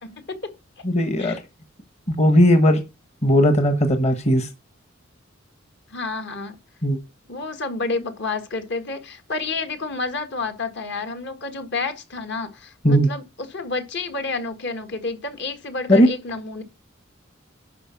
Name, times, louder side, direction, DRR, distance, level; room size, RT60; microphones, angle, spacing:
voice 1, 0.0-0.5 1.2-1.4 5.9-6.5 7.3-16.6, left 3 dB, 60° left, 1.7 m, -30 dB
voice 2, 0.8-1.4 2.1-2.8 3.2-4.5 6.8-7.0 12.8-13.1 15.9-16.1, equal, 35° left, 1.2 m, -17 dB
11.5 x 4.7 x 5.8 m
head